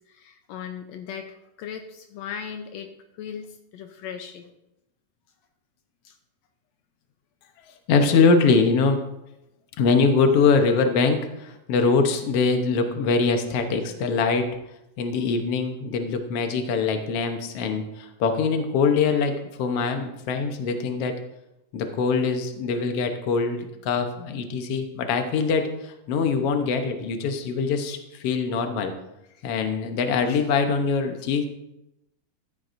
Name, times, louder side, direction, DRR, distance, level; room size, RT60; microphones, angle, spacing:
voice 1, 0.1-2.9 3.2-4.5 6.0-6.1, left 7 dB, 90° left, 5 dB, 1.5 m, -38 dB
voice 2, 7.9-9.0 9.8-14.5 15.0-19.3 19.6-21.1 21.7-28.9 29.4-31.5, left 4 dB, 70° left, 6 dB, 1.4 m, -23 dB
14.0 x 11.0 x 2.6 m, 0.88 s
omnidirectional pair, 4.0 m